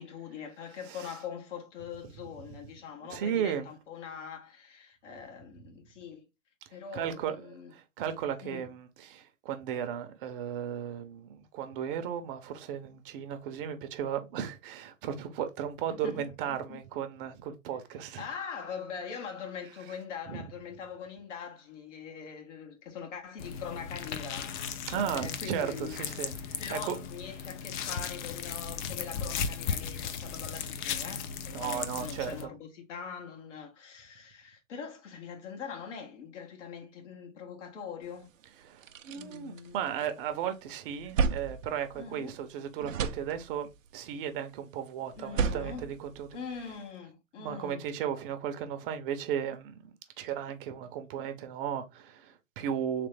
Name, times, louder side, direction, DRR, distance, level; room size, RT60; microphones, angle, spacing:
voice 1, 0.0-6.2 6.7-7.7 8.4-8.7 15.9-16.8 18.2-24.6 24.9-38.3 39.1-39.8 41.9-42.4 45.1-45.9 46.3-47.8, left 7 dB, 65° left, 1.5 m, -43 dB
voice 2, 0.9-1.2 3.1-3.7 6.9-18.3 20.3-20.4 24.9-26.9 31.5-32.5 38.6-46.3 47.4-53.1, right 9 dB, 45° right, 0.8 m, -35 dB
sound 1, 23.4-32.5, left 7 dB, 40° left, 0.5 m, -36 dB
sound 2, 38.2-38.3 38.6-40.3 40.7-42.5 42.8-43.8 45.1-46.8, right 5 dB, 80° right, 0.7 m, -33 dB
3.4 x 3.3 x 3.3 m
hypercardioid pair, 125°, 39 cm